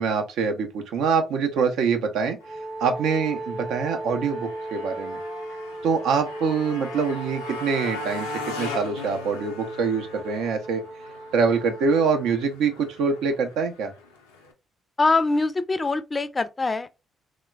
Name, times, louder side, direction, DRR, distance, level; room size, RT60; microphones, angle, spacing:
voice 1, 0.0-2.4 2.8-5.2 5.8-10.8 11.3-13.9, right 5 dB, 70° right, 0.5 m, -24 dB
Motorcycle, 2.4-14.5, left 3 dB, 90° left, 0.4 m, -40 dB
Wind instrument woodwind instrument, 2.4-12.4, right 2 dB, 45° right, 0.9 m, -37 dB
voice 2, 15.0-16.9, left 3 dB, 30° left, 0.4 m, -23 dB
3.1 x 2.1 x 2.2 m
hypercardioid pair, 45°, 0 cm